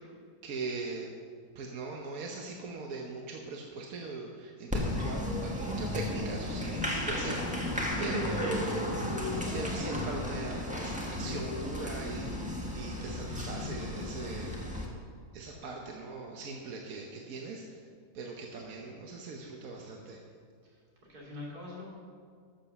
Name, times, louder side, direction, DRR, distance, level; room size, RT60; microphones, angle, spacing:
voice 1, 0.4-1.1 1.5-8.6 9.5-14.8 15.3-17.8 18.1-20.2, right 3 dB, 70° right, 0 dB, 1.4 m, -40 dB
Applause, 4.7-14.9, left 1 dB, 5° right, 1.4 m, -34 dB
voice 2, 8.5-8.9 18.5-19.0 20.6-21.9, left 2 dB, 85° right, -4 dB, 3.3 m, -47 dB
11.5 x 7.3 x 6.8 m, 2.1 s
omnidirectional pair, 1.6 m